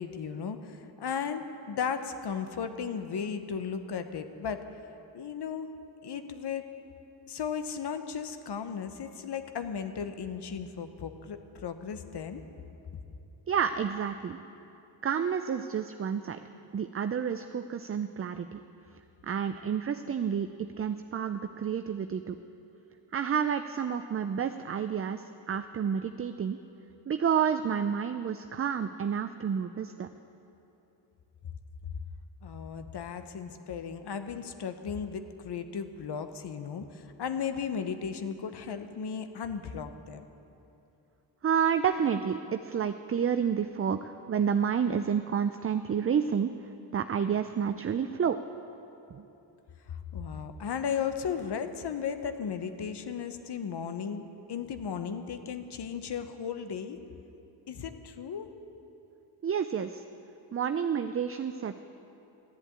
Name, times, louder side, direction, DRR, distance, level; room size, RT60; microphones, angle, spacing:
voice 1, 0.0-4.6 5.1-5.7 6.0-6.6 7.3-12.4 32.4-40.2 49.9-54.2 54.5-57.0 57.7-58.5, left 7 dB, 55° left, 9 dB, 1.0 m, -35 dB
voice 2, 13.5-14.4 15.0-16.4 16.7-18.6 19.2-20.5 20.8-22.4 23.1-26.6 27.1-30.1 41.4-46.5 46.9-48.4 49.1-49.2 59.4-60.0 60.5-61.8, right 7 dB, 30° right, 9 dB, 0.5 m, -29 dB
13.0 x 8.0 x 8.8 m, 2.9 s
cardioid pair, 60°, 47 cm